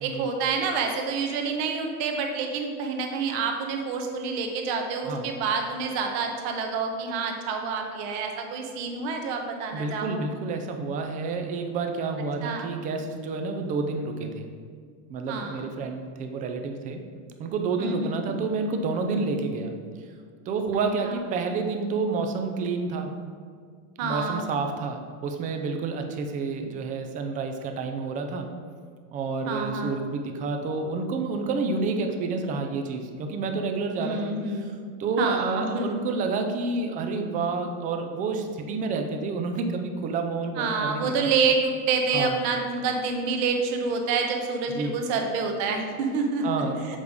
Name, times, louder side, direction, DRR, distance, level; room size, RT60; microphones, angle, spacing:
voice 1, 0.0-10.2 12.4-12.7 15.3-15.7 17.8-18.3 21.0-21.1 24.0-24.4 29.5-30.0 34.0-34.8 35.2-36.0 40.6-46.5, right 4 dB, 50° right, 3 dB, 1.2 m, -28 dB
voice 2, 9.7-14.5 15.1-17.0 17.4-19.7 20.5-23.2 24.0-28.5 29.1-34.7 35.0-41.1 42.1-42.4 44.7-45.0 46.4-47.0, right 4 dB, 20° right, 5 dB, 0.5 m, -29 dB
7.3 x 5.2 x 4.8 m, 2.1 s
supercardioid pair, 160°, 39 cm